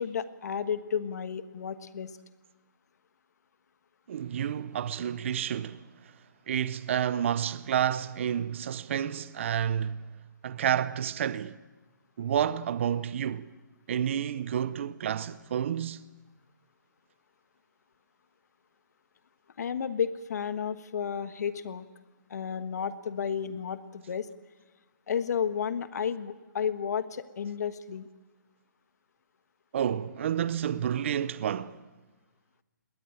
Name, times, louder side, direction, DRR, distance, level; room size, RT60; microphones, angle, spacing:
voice 1, 0.0-2.1 19.6-21.9 22.3-24.3 25.1-28.1, left 7 dB, 55° left, 1.4 m, -32 dB
voice 2, 4.1-5.8 6.5-10.1 10.4-11.6 12.2-13.5 13.9-16.0 29.7-31.8, right 9 dB, 40° right, 0.7 m, -30 dB
20.5 x 18.5 x 8.9 m
hypercardioid pair, 165°, 11 cm